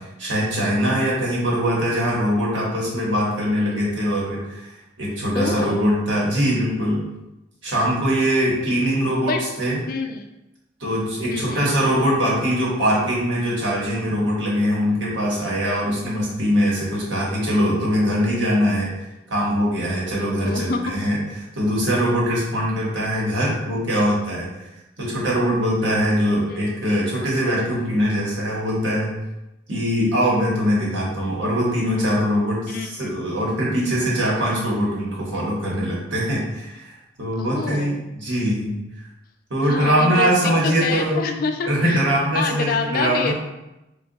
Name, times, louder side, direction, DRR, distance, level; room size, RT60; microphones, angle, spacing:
voice 1, 0.0-4.7 5.0-7.0 7.6-9.8 10.8-21.2 21.5-24.5 25.0-29.1 29.7-38.8 39.5-41.2 41.7-43.3, equal, 75° right, -5 dB, 1.1 m, -22 dB
voice 2, 5.3-5.8 9.2-9.4 9.9-10.2 11.3-11.7 20.4-20.9 23.0-23.1 26.5-26.7 32.7-33.1 37.4-38.0 39.6-42.0 42.3-43.3, left 4 dB, 50° left, 4 dB, 0.3 m, -27 dB
3.7 x 2.3 x 2.6 m, 0.95 s
head